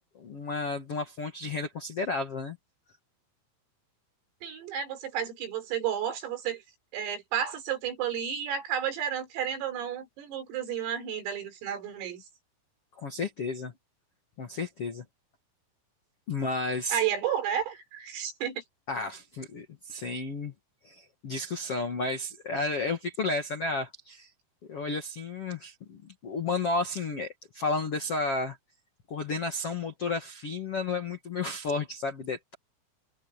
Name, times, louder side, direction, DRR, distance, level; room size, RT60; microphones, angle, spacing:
voice 1, 0.1-2.6 13.0-13.7 14.4-15.0 16.3-17.0 18.9-20.5 20.8-24.3 24.7-28.6 29.1-32.5, left 3 dB, 60° left, 1.5 m, -32 dB
voice 2, 4.4-6.6 6.9-12.2 16.9-18.6, right 9 dB, 80° right, 6.9 m, -32 dB
omnidirectional pair, 5.9 m